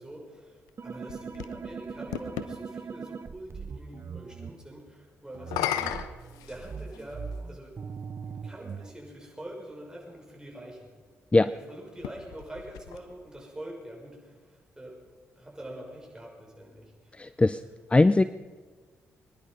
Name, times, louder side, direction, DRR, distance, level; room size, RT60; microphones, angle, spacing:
voice 1, 0.0-6.1 6.5-8.0 8.2-10.9 11.4-15.1 15.4-17.4, right 1 dB, 10° right, -1 dB, 6.1 m, -45 dB
sound 1, 0.7-2.5 5.3-7.1 8.1-8.2 11.9-13.4, left 11 dB, 80° left, 0.8 m, -35 dB
sound 2, 0.8-4.5 5.3-8.9, right 5 dB, 45° right, 0.9 m, -40 dB
voice 2, 17.2-17.6 17.9-18.2, left 2 dB, 20° left, 15 dB, 0.5 m, -20 dB
22.5 x 11.0 x 5.4 m, 1.5 s
hypercardioid pair, 45°, 6 cm